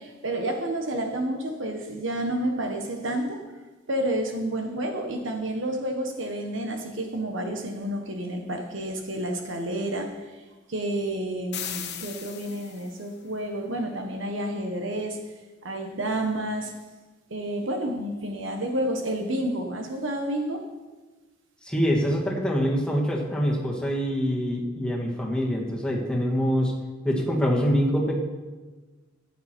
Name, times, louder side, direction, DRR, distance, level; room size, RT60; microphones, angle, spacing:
voice 1, 0.0-3.4 3.9-10.2 10.7-15.2 15.6-16.7 17.3-20.6, right 1 dB, 70° right, 4 dB, 1.4 m, -30 dB
sound 1, 11.5-13.1, left 9 dB, 60° left, 1.2 m, -37 dB
voice 2, 21.6-26.7 27.0-28.2, equal, 5° left, -2 dB, 2.0 m, -25 dB
14.5 x 8.6 x 4.5 m, 1.2 s
head